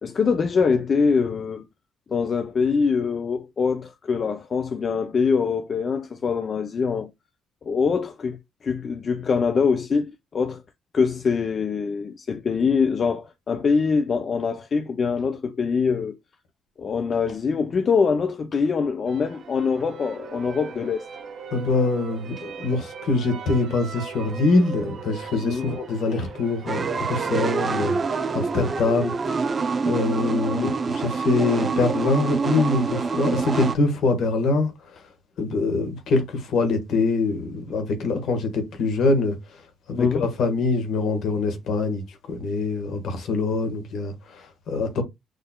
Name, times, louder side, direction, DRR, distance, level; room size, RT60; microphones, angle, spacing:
voice 1, 0.0-1.7 2.1-7.1 7.6-10.6 10.9-16.2 16.8-21.1 25.4-25.8 30.5-30.8 40.0-40.3, left 5 dB, 45° left, 0.5 m, -24 dB
sound 1, 19.1-29.5, right 6 dB, 60° right, 0.9 m, -40 dB
voice 2, 21.5-29.1 29.9-34.7 35.4-39.4 39.9-45.0, left 3 dB, 75° left, 1.5 m, -24 dB
sound 2, 26.7-33.7, right 4 dB, 35° right, 0.6 m, -26 dB
6.6 x 3.2 x 2.3 m
cardioid pair, 105°, 0 cm